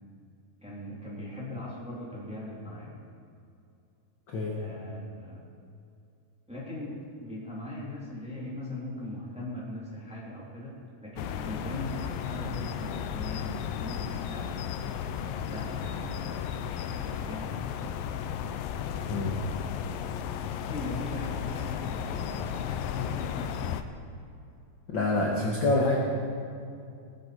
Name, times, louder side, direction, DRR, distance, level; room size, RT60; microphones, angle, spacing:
voice 1, 0.6-3.0 4.5-5.4 6.5-10.7 11.0-14.5 15.4-16.6 16.9-17.6 20.6-23.6 25.3-25.5, left 1 dB, ahead, -6 dB, 2.4 m, -39 dB
sound 1, 11.2-23.8, left 8 dB, 80° left, 2.2 m, -34 dB
voice 2, 24.9-26.0, left 2 dB, 55° left, -3 dB, 1.4 m, -26 dB
21.0 x 7.6 x 5.1 m, 2.5 s
omnidirectional pair, 4.1 m